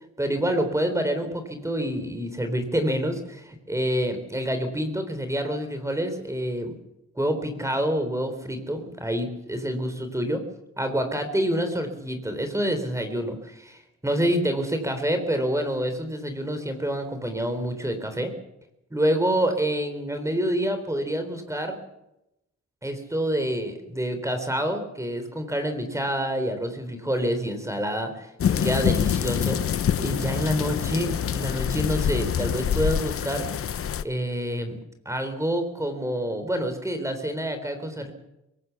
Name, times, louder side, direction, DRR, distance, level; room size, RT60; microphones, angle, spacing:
voice 1, 0.2-6.7 7.2-10.4 10.8-18.3 18.9-21.8 22.8-33.5 34.0-34.8 35.1-38.1, equal, 10° right, 7 dB, 3.8 m, -27 dB
sound 1, 28.4-34.0, left 9 dB, 45° left, 0.9 m, -26 dB
23.5 x 18.0 x 7.1 m, 0.88 s
cardioid pair, 90°, 30 cm